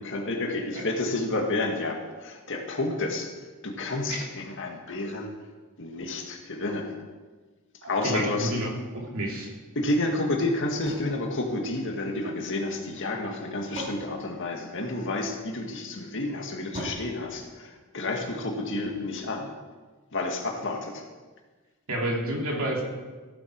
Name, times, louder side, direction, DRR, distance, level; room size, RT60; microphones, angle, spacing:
voice 1, 0.0-3.3 3.6-5.3 5.8-6.9 7.9-8.5 9.8-19.5 20.1-21.0, left 2 dB, 60° left, 2 dB, 2.0 m, -30 dB
voice 2, 7.8-9.5 21.9-22.8, right 1 dB, 65° right, -1 dB, 3.1 m, -30 dB
sound 1, 10.8-12.4 13.2-15.2 16.7-18.3, equal, 35° right, 4.2 m, -42 dB
15.5 x 11.5 x 4.7 m, 1.3 s
head